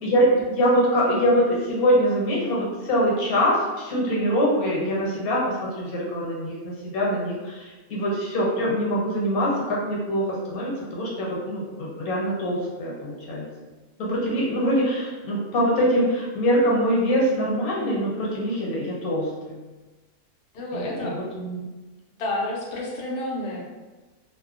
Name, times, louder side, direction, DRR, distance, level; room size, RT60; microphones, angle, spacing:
voice 1, 0.0-13.5 14.0-19.6 20.7-21.6, equal, 75° left, -4 dB, 1.2 m, -24 dB
voice 2, 20.5-21.2 22.2-23.6, left 1 dB, 60° left, -4 dB, 0.6 m, -29 dB
2.9 x 2.1 x 2.4 m, 1.2 s
omnidirectional pair, 1.6 m